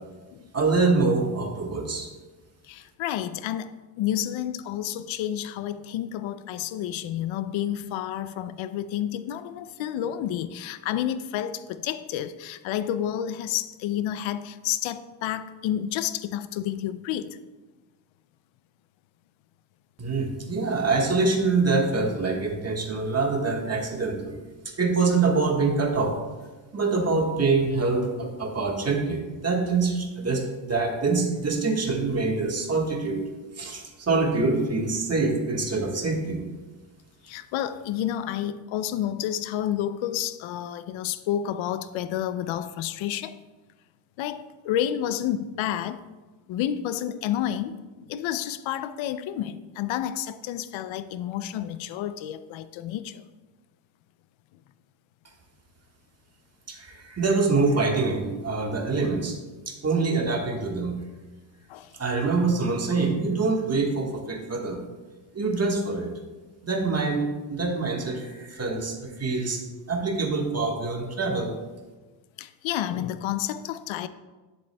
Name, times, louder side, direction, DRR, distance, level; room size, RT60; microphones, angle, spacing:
voice 1, 0.5-2.1 20.0-24.3 24.8-26.1 26.7-33.2 33.6-36.4 56.7-59.3 59.7-61.0 62.0-64.8 65.3-66.1 66.6-69.6 69.9-71.6, right 3 dB, 35° right, 1.5 m, -25 dB
voice 2, 2.6-17.4 37.2-43.4 44.2-46.0 46.5-53.2 61.7-61.9 72.4-74.1, left 11 dB, 85° left, 0.5 m, -30 dB
10.5 x 7.4 x 2.2 m
cardioid pair, 90°, 45 cm